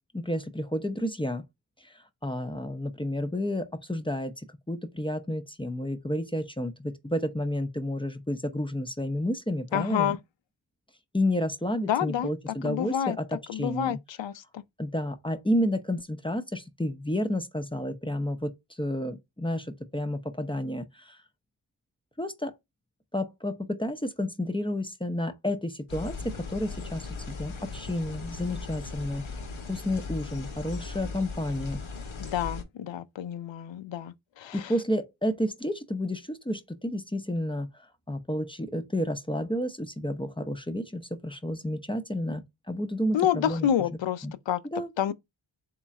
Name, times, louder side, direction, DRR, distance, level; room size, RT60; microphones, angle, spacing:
voice 1, 0.1-1.4 1.8-1.9 2.2-4.3 4.7-10.2 11.1-14.0 14.8-18.5 18.8-21.2 22.2-22.5 23.1-29.4 29.7-31.8 34.5-37.7 38.1-43.7 44.2-44.3 44.7-45.1, left 1 dB, 10° left, 0.6 m, -31 dB
voice 2, 9.7-10.2 11.9-13.2 13.5-14.6 32.2-34.7 43.1-44.6 45.0-45.1, left 10 dB, 70° left, 0.5 m, -29 dB
sound 1, 25.9-32.6, left 4 dB, 85° left, 0.9 m, -38 dB
3.7 x 2.3 x 4.1 m
cardioid pair, 45°, 47 cm